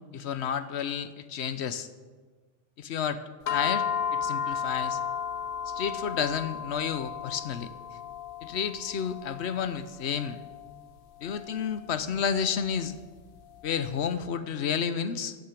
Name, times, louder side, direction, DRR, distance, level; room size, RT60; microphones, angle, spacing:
voice 1, 0.1-1.9 2.8-3.2 3.5-3.8 4.1-5.0 5.7-7.7 8.4-10.4 11.2-13.0 13.6-15.4, left 7 dB, 90° left, 12 dB, 1.0 m, -31 dB
sound 1, 3.5-13.9, left 7 dB, 60° left, 0.8 m, -35 dB
14.0 x 6.6 x 8.3 m, 1.4 s
omnidirectional pair, 1.1 m